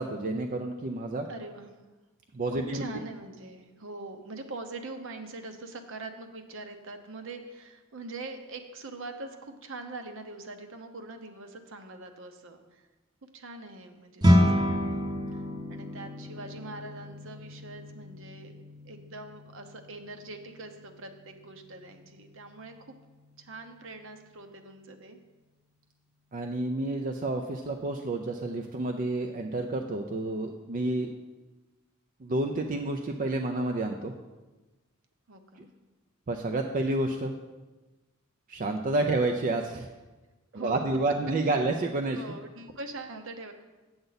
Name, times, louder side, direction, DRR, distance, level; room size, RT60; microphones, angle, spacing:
voice 1, 0.0-1.3 2.3-2.8 26.3-31.1 32.2-34.1 36.3-37.3 38.5-39.9 40.5-42.3, right 2 dB, 40° right, 4 dB, 0.4 m, -29 dB
voice 2, 1.3-1.7 2.5-12.9 13.2-15.4 15.7-18.6 18.8-23.0 23.4-25.2 35.3-35.7 39.0-39.1 40.5-40.8 41.4-41.5 42.1-43.5, right 2 dB, 65° right, 6 dB, 0.8 m, -43 dB
sound 1, 14.2-23.7, equal, 20° right, 0.8 m, -30 dB
7.9 x 7.9 x 4.0 m, 1.2 s
head